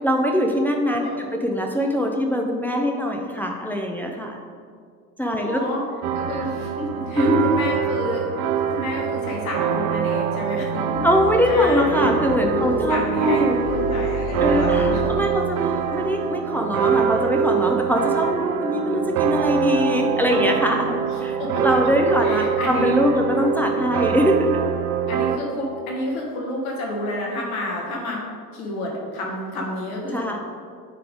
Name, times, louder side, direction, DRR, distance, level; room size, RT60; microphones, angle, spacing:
voice 1, 0.0-4.4 5.2-5.6 7.1-7.5 11.0-13.6 14.4-20.9 21.2-24.6 30.1-30.4, equal, 5° left, 1 dB, 0.4 m, -22 dB
voice 2, 1.0-1.3 5.4-5.8 6.1-11.1 11.4-12.1 12.5-15.2 21.0-21.6 22.2-23.0 25.1-28.2 28.5-30.4, left 1 dB, 60° left, -1 dB, 1.6 m, -30 dB
sound 1, 6.0-25.4, right 8 dB, 45° right, 0.6 m, -24 dB
sound 2, 11.0-16.0, left 4 dB, 90° left, 0.7 m, -33 dB
9.2 x 3.4 x 3.8 m, 2.1 s
figure-of-eight pair, 65°, 47 cm